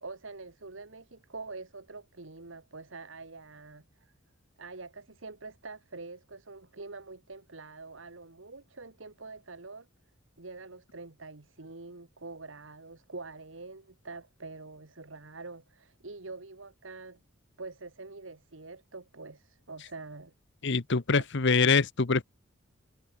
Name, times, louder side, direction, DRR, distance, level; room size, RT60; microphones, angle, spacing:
voice 1, 0.0-4.1 4.6-9.9 10.4-17.2 17.6-20.3 21.1-21.2, right 3 dB, 70° right, 1.7 m, -45 dB
voice 2, 20.6-22.2, left 4 dB, 65° left, 1.0 m, -24 dB
head